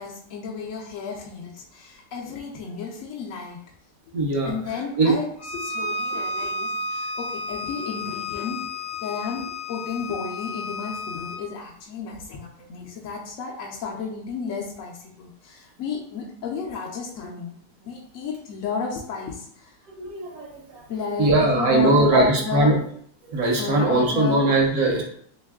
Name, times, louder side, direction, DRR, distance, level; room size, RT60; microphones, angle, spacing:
voice 1, 0.0-3.6 4.1-4.2 4.4-19.7 20.9-22.7 23.6-24.4, left 5 dB, 65° left, -3 dB, 0.8 m, -32 dB
voice 2, 4.1-4.5 5.0-5.2 20.0-20.9 21.2-22.8 23.3-25.0, right 2 dB, 60° right, 0 dB, 1.1 m, -20 dB
Bowed string instrument, 5.4-11.4, left 2 dB, 35° left, 0.7 m, -32 dB
3.1 x 3.0 x 3.5 m, 0.63 s
omnidirectional pair, 1.9 m